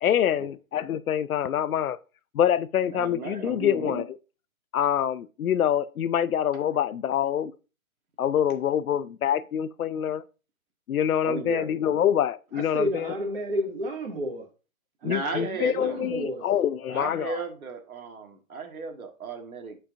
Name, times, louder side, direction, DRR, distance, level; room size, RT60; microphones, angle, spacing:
voice 1, 0.0-2.0 2.3-4.1 4.7-7.5 8.2-10.2 10.9-13.1 15.0-17.4, left 9 dB, 85° left, 0.7 m, -25 dB
voice 2, 2.9-4.1 11.2-11.7 15.0-16.0 16.9-19.8, right 4 dB, 90° right, 1.7 m, -35 dB
voice 3, 12.5-14.5 15.0-16.5, equal, 40° right, 2.1 m, -31 dB
10.0 x 4.4 x 2.5 m
hypercardioid pair, 175°, 42 cm